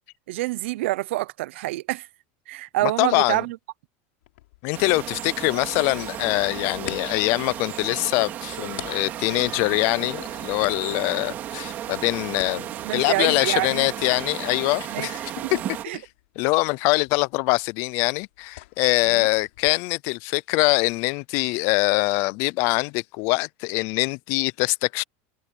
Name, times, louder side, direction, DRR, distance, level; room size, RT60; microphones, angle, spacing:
voice 1, 0.3-2.1 2.5-3.6 12.8-13.9 14.9-15.1 15.4-15.6 15.8-16.0 19.1-19.3, right 18 dB, 75° right, 0.6 m, -27 dB
voice 2, 2.8-3.4 4.6-12.7 12.9-15.6 15.9-16.0 16.4-25.0, left 26 dB, 40° left, 0.4 m, -23 dB
sound 1, 4.2-19.7, left 18 dB, 75° left, 6.3 m, -47 dB
sound 2, 4.7-15.8, right 11 dB, 30° right, 2.3 m, -34 dB
supercardioid pair, 175°, 7 cm